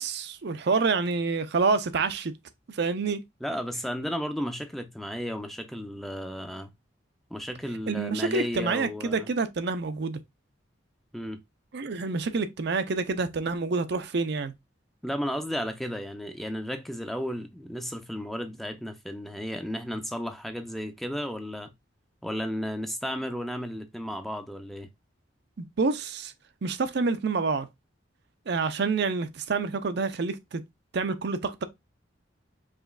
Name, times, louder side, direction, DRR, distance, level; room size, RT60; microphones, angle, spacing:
voice 1, 0.0-2.3 2.7-3.2 7.9-10.2 11.7-14.5 25.6-26.3 26.6-27.7 28.5-30.6 30.9-31.6, right 4 dB, 60° right, 0.5 m, -27 dB
voice 2, 3.4-6.7 7.3-9.3 11.1-11.4 15.0-21.7 22.2-24.9, equal, ahead, 0.5 m, -33 dB
4.9 x 3.0 x 2.4 m
head